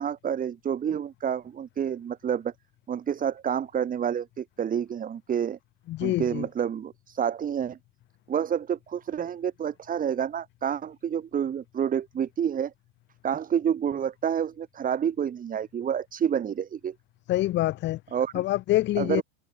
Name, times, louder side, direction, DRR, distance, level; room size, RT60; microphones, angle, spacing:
voice 1, 0.0-2.5 2.9-5.6 6.0-7.8 8.3-12.7 13.2-16.9 18.1-18.4 19.0-19.2, right 8 dB, 25° right, 3.2 m, -29 dB
voice 2, 5.9-6.5 17.3-18.0 18.3-19.2, left 16 dB, 35° left, 0.7 m, -25 dB
cardioid pair, 160°, 34 cm